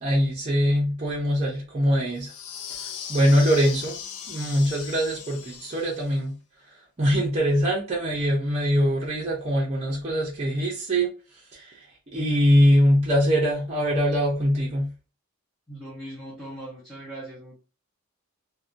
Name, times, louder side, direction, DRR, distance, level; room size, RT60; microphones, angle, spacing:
voice 1, 0.0-2.3 3.1-4.0 4.3-6.4 7.0-11.1 11.5-11.9 12.1-14.9, equal, 30° right, 0.5 m, -22 dB
sound 1, 2.2-6.2, left 8 dB, 80° left, 0.4 m, -38 dB
voice 2, 15.7-17.6, right 1 dB, ahead, 0.8 m, -39 dB
2.5 x 2.1 x 2.5 m
head